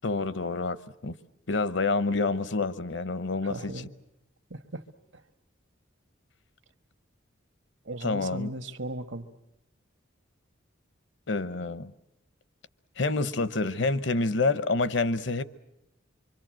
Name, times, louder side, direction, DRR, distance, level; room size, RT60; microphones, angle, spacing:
voice 1, 0.0-0.8 1.0-1.1 1.5-3.7 8.0-8.5 11.3-11.9 13.0-15.4, left 3 dB, 65° left, 0.9 m, -27 dB
voice 2, 3.4-3.9 4.5-4.8 5.1-5.2 7.8-9.3, right 2 dB, 70° right, 1.4 m, -37 dB
25.5 x 25.0 x 7.6 m
head